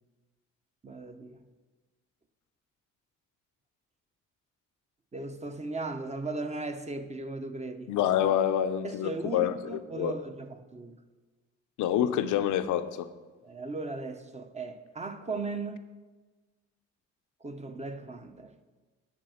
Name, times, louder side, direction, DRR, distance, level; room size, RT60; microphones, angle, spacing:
voice 1, 0.8-1.4 5.1-7.9 8.8-11.0 13.4-15.8 17.4-18.5, right 3 dB, 20° right, 0.8 m, -37 dB
voice 2, 7.9-9.5 9.9-10.1 11.8-13.1, left 10 dB, 85° left, 0.6 m, -27 dB
11.0 x 4.1 x 6.4 m
cardioid pair, 90°, 30 cm